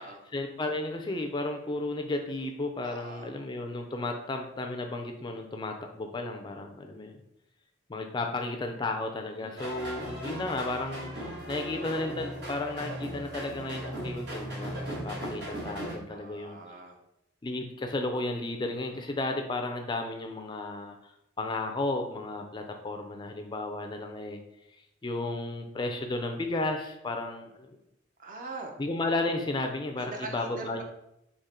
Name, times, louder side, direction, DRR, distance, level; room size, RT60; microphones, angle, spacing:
voice 1, 0.3-7.2 7.9-16.6 17.4-21.0 21.4-24.4 25.0-27.8 28.8-30.8, left 2 dB, 25° left, 4 dB, 0.3 m, -33 dB
voice 2, 2.8-3.3 9.4-9.9 16.1-17.0 18.9-19.0 28.2-28.8 30.0-30.8, right 3 dB, 45° right, 2 dB, 0.7 m, -42 dB
sound 1, 9.6-15.9, right 1 dB, 60° right, 1.4 m, -37 dB
3.7 x 2.9 x 4.2 m, 0.82 s
head